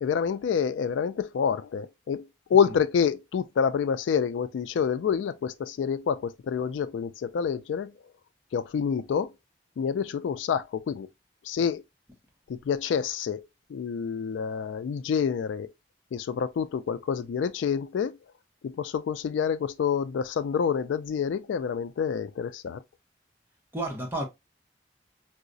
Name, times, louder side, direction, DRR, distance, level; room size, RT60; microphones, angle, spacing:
voice 1, 0.0-7.9 8.5-9.3 9.8-11.1 11.4-11.8 12.5-13.4 13.7-15.7 16.1-18.2 18.6-22.8, left 7 dB, 85° left, 0.3 m, -27 dB
voice 2, 2.5-2.8 23.7-24.2, right 1 dB, 10° right, 0.8 m, -32 dB
4.6 x 2.0 x 2.5 m
head